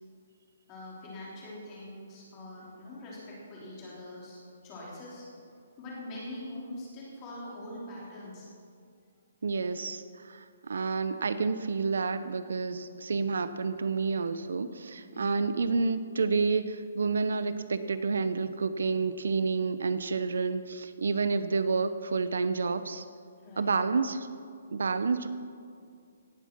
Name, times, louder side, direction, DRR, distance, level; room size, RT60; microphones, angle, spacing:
voice 1, 0.7-8.5 15.1-15.5 23.4-23.9, left 1 dB, 15° left, -5 dB, 3.1 m, -43 dB
voice 2, 9.4-23.0 23.6-24.3 24.7-25.3, right 4 dB, 80° right, 12 dB, 0.7 m, -29 dB
17.5 x 7.3 x 6.0 m, 2.3 s
hypercardioid pair, 175°, 0 cm